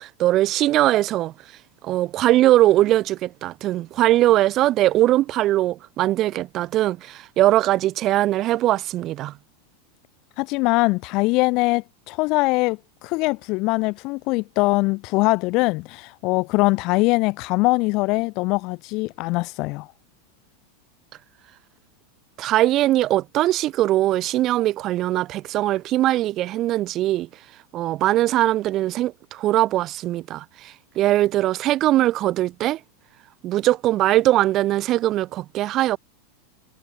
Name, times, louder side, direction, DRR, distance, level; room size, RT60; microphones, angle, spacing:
voice 1, 0.0-1.3 1.8-9.3 22.4-27.3 27.7-32.8 33.4-36.0, right 14 dB, 45° right, 2.2 m, -21 dB
voice 2, 10.4-19.9, left 24 dB, 50° left, 1.9 m, -22 dB
hypercardioid pair, 95°, 0 cm